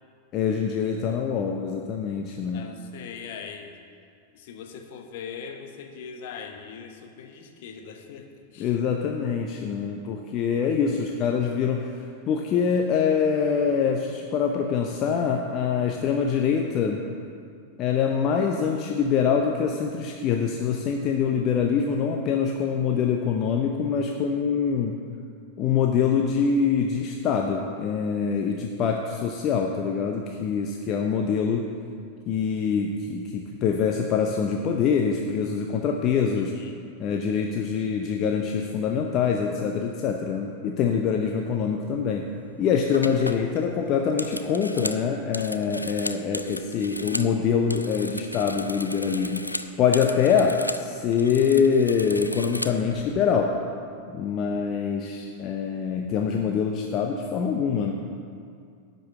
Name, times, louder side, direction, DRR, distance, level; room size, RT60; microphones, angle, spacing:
voice 1, 0.3-2.7 8.6-17.0 17.8-25.0 25.6-31.7 32.3-36.5 37.0-42.3 42.6-53.6 54.1-57.9, left 6 dB, 35° left, 2 dB, 0.7 m, -24 dB
voice 2, 2.5-3.7 4.3-8.8 10.9-11.3 36.4-36.8, left 6 dB, 50° left, 4 dB, 1.0 m, -41 dB
sound 1, 42.3-42.5 42.9-47.3 47.6-50.9 51.1-53.0, left 1 dB, 85° left, 0.4 m, -35 dB
10.5 x 5.4 x 7.7 m, 2.3 s
figure-of-eight pair, 90°, 0 cm